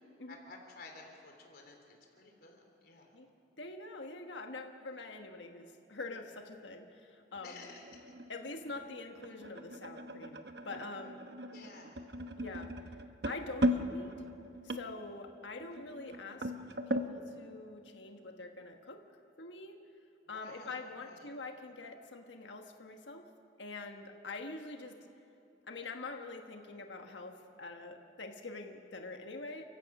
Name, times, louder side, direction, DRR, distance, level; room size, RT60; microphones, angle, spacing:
voice 1, 0.3-3.2 7.4-7.9 11.5-12.1 12.4-12.7 20.2-21.3, left 3 dB, 55° left, 2 dB, 3.7 m, -53 dB
voice 2, 3.6-7.6 8.3-11.2 12.4-12.7 13.2-14.1 14.6-16.5 16.9-19.0 19.4-19.8 20.3-23.2 23.6-24.9 25.7-27.3 27.6-29.6, left 3 dB, 90° left, 4 dB, 1.4 m, -45 dB
sound 1, 7.4-17.1, equal, 60° right, 1.1 m, -38 dB
29.5 x 16.0 x 6.0 m, 2.9 s
head